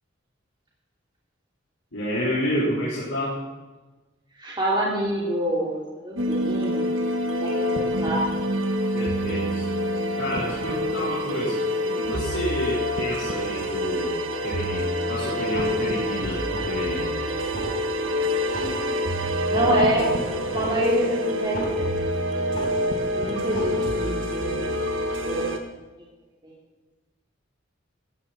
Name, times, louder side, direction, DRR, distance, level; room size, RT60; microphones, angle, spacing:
voice 1, 1.9-3.4 8.9-9.7 10.2-17.2, equal, 80° left, -8 dB, 4.2 m, -29 dB
voice 2, 4.4-6.9 7.3-7.7 8.0-8.2 18.5-18.8 19.5-20.1 20.5-22.0 23.1-24.7 25.1-25.4 26.4-26.5, right 1 dB, 25° right, -5 dB, 3.1 m, -27 dB
sound 1, 6.2-25.6, equal, 90° right, 1.7 m, -26 dB
sound 2, 15.5-16.1 16.4-17.1 17.4-18.1 18.4-19.1 19.4-22.1 22.4-23.1 23.4-24.1 24.4-24.6, right 1 dB, 45° left, 5.3 m, -35 dB
18.0 x 14.0 x 4.3 m, 1.2 s
head